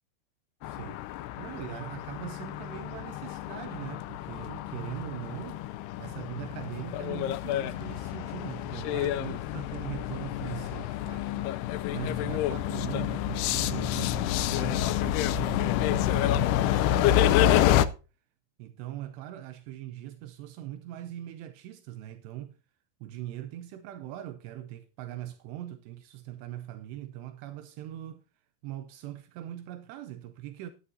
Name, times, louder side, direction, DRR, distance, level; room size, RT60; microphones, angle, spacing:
sound 1, 0.6-17.9, left 12 dB, 80° left, 2.5 m, -28 dB
voice 1, 0.6-5.6 6.0-11.5 11.9-17.9 18.6-22.6 23.0-28.2 28.6-30.7, right 13 dB, 80° right, 2.9 m, -41 dB
12.5 x 12.0 x 2.7 m
omnidirectional pair, 4.9 m